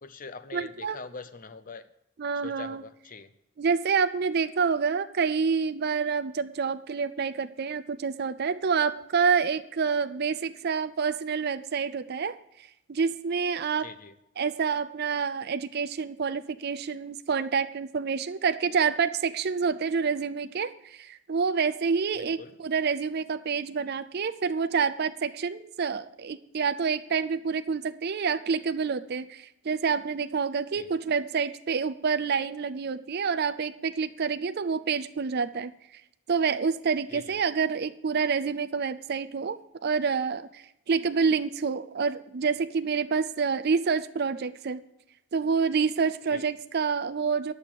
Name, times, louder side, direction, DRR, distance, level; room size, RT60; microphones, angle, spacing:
voice 1, 0.0-1.9 2.4-3.3 13.8-14.1 22.2-22.5 30.8-31.0 37.1-37.4 46.3-46.5, left 4 dB, 40° left, 13 dB, 0.6 m, -43 dB
voice 2, 0.5-1.0 2.2-2.8 3.6-12.4 12.9-13.9 14.4-35.7 36.3-44.8 45.3-47.5, right 5 dB, 45° right, 11 dB, 0.4 m, -28 dB
10.5 x 6.8 x 7.4 m, 0.83 s
head